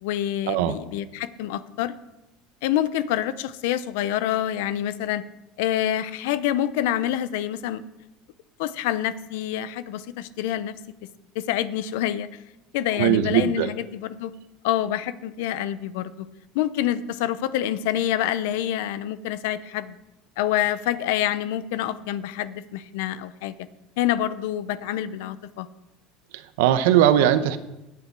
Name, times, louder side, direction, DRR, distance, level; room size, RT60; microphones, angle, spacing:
voice 1, 0.0-1.9 2.6-5.2 5.6-7.8 8.6-10.7 11.3-12.3 12.7-14.3 14.6-16.3 16.5-20.0 20.4-23.5 24.0-25.7, left 12 dB, 80° left, 15 dB, 0.7 m, -27 dB
voice 2, 13.0-13.7 26.3-27.6, right 11 dB, 85° right, 11 dB, 0.9 m, -20 dB
19.0 x 6.9 x 4.7 m, 0.95 s
supercardioid pair, 125°, 0 cm